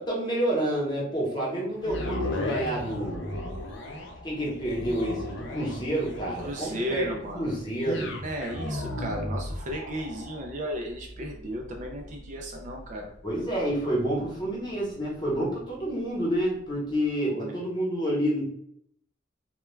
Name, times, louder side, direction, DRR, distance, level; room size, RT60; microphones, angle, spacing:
voice 1, 0.0-3.4 4.2-8.1 13.2-18.5, right 1 dB, 20° left, -5 dB, 0.8 m, -29 dB
sound 1, 1.8-16.0 16.5-16.6, left 1 dB, 60° left, 0.4 m, -37 dB
voice 2, 6.4-7.5 8.2-13.1 17.3-17.5, equal, 40° right, 1 dB, 0.3 m, -34 dB
2.2 x 2.2 x 3.1 m, 0.70 s
head